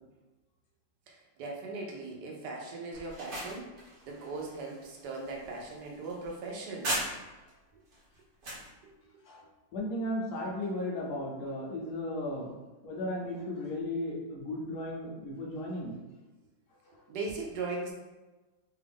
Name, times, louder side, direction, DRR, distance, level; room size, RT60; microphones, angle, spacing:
voice 1, 1.1-6.9 8.8-8.9 17.1-17.9, right 3 dB, 70° right, -1 dB, 1.2 m, -39 dB
sound 1, 2.9-7.5 7.9-8.7, right 1 dB, 50° right, 0.6 m, -39 dB
voice 2, 9.7-12.5 12.8-16.0 16.9-17.0, left 1 dB, 65° left, -2 dB, 1.1 m, -35 dB
3.5 x 2.4 x 3.4 m, 1.2 s
omnidirectional pair, 2.0 m